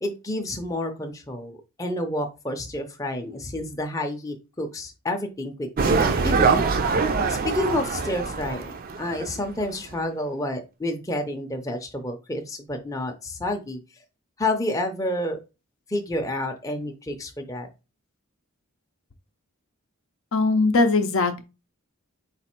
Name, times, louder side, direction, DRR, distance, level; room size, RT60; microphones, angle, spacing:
voice 1, 0.0-6.7 7.3-13.8 14.4-15.4 15.9-17.7, left 1 dB, 15° left, 0.6 m, -29 dB
sound 1, 5.8-9.6 9.9-10.0, right 4 dB, 40° right, 0.5 m, -23 dB
voice 2, 20.3-21.4, left 3 dB, 60° left, 0.6 m, -20 dB
4.1 x 2.5 x 4.4 m
head